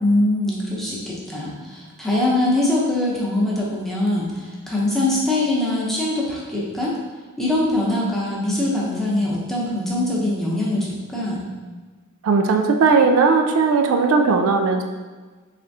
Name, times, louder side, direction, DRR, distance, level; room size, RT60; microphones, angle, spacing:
voice 1, 0.0-6.9 7.4-11.4, left 1 dB, ahead, -7 dB, 0.8 m, -22 dB
voice 2, 12.2-14.8, right 4 dB, 75° right, 4 dB, 0.3 m, -17 dB
3.7 x 3.3 x 2.7 m, 1.4 s
head